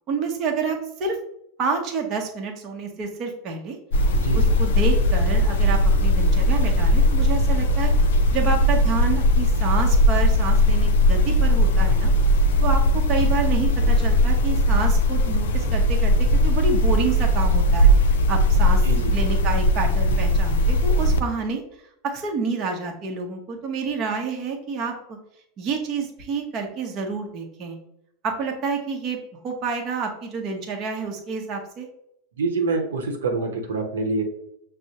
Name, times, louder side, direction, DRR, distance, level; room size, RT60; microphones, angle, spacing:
voice 1, 0.1-1.2 1.6-3.8 4.3-7.9 8.3-12.1 12.6-18.8 19.1-21.6 22.0-25.2 25.6-27.8 28.2-29.2 29.4-31.9, right 4 dB, 40° right, 2 dB, 0.8 m, -28 dB
sound 1, 3.9-21.2, equal, 75° left, 0.4 m, -19 dB
voice 2, 4.1-4.5 18.8-19.1 32.4-34.2, right 3 dB, 80° right, 3 dB, 0.8 m, -26 dB
6.1 x 2.0 x 2.8 m, 0.75 s
hypercardioid pair, 95°, 0 cm